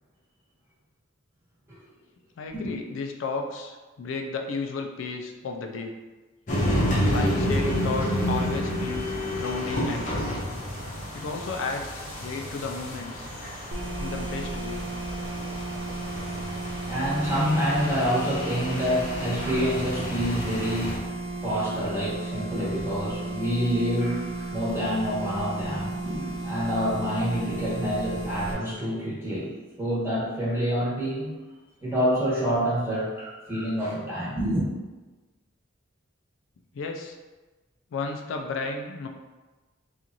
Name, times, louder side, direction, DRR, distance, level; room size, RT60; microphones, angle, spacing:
voice 1, 2.4-6.0 7.1-10.4 11.1-13.3 14.0-14.9 36.7-37.2 37.9-39.1, left 4 dB, 75° left, 4 dB, 0.3 m, -33 dB
sound 1, 6.5-21.0, equal, 40° left, 0.7 m, -30 dB
sound 2, 13.7-28.5, right 2 dB, 80° right, 0.6 m, -34 dB
voice 2, 16.5-29.5 29.8-31.3 31.8-34.7, equal, 15° right, -8 dB, 1.0 m, -27 dB
2.9 x 2.4 x 3.8 m, 1.2 s
head